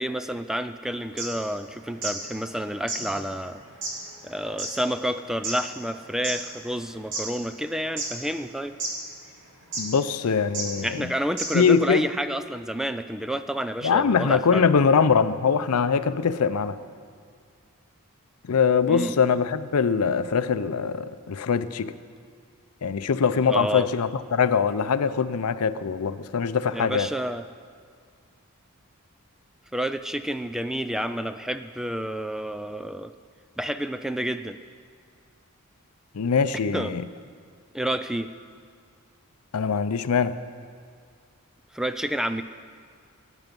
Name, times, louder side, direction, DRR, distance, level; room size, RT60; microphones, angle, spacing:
voice 1, 0.0-3.6 4.2-8.8 10.8-14.7 18.9-19.2 23.5-23.9 26.7-27.4 29.7-33.1 33.6-34.6 36.7-37.0 37.7-38.3 41.7-42.4, equal, ahead, 10 dB, 0.3 m, -29 dB
sound 1, 1.1-2.2 2.5-2.6 2.9-6.4 6.9-7.7 8.0-8.5 8.8-8.9 9.7-10.0 10.5-10.7 11.0-11.1 11.4-11.7, right 2 dB, 60° right, 2.6 m, -32 dB
voice 2, 9.8-11.1 11.5-12.0 13.8-16.8 18.4-21.9 22.8-27.1 36.1-37.1 39.5-40.3, left 6 dB, 80° left, 13 dB, 0.5 m, -22 dB
17.5 x 9.1 x 5.3 m, 2.1 s
head